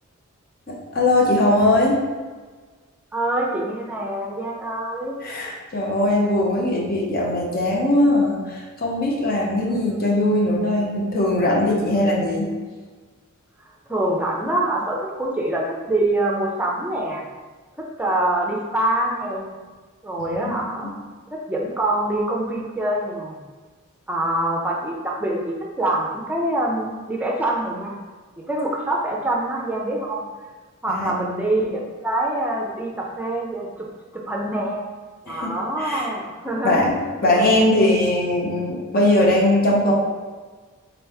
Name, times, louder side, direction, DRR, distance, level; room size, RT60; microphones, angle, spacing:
voice 1, 0.7-2.0 5.2-12.5 20.2-20.9 30.9-31.1 35.3-35.5 35.8-36.1 36.6-37.0 37.2-39.9, left 1 dB, 45° left, -3 dB, 0.8 m, -20 dB
voice 2, 3.1-5.2 9.7-10.0 11.9-12.1 13.9-17.2 17.8-19.5 20.0-20.9 21.3-23.4 24.1-28.0 28.4-30.3 30.8-33.8 34.3-34.9 35.2-36.9 37.3-37.5 37.9-38.2, right 1 dB, 5° right, -2 dB, 0.6 m, -25 dB
3.8 x 3.0 x 3.4 m, 1.4 s
head